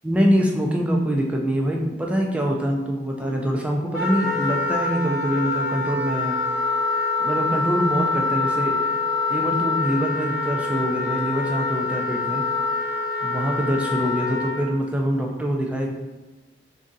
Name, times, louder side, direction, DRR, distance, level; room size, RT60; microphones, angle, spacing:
voice 1, 0.0-6.4 7.2-9.0 9.3-12.4 13.2-15.9, equal, 5° right, 0 dB, 0.4 m, -24 dB
Wind instrument woodwind instrument, 3.9-14.6, left 3 dB, 60° left, 0.7 m, -25 dB
3.7 x 2.7 x 3.7 m, 1.2 s
head